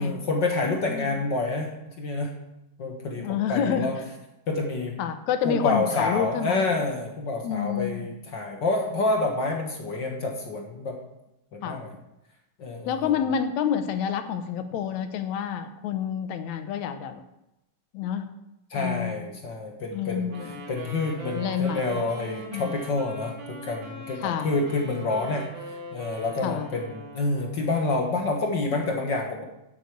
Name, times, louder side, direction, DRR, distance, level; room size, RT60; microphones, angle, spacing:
voice 1, 0.0-2.4 2.8-4.0 4.5-5.0 5.4-11.0 11.5-11.9 12.6-13.2 18.7-20.3 20.7-25.5 25.9-29.4, left 3 dB, 45° left, 1 dB, 1.6 m, -28 dB
voice 2, 0.9-1.2 3.1-4.0 5.0-6.7 7.4-8.1 11.6-11.8 12.9-17.2 17.9-18.3 18.8-19.3 19.9-20.5 21.3-22.1 22.5-22.7 24.2-24.5 26.4-26.7, left 8 dB, 75° left, 9 dB, 2.1 m, -28 dB
Wind instrument woodwind instrument, 20.3-27.7, right 2 dB, 75° right, 3.5 m, -41 dB
8.5 x 8.1 x 8.1 m, 0.90 s
omnidirectional pair, 3.5 m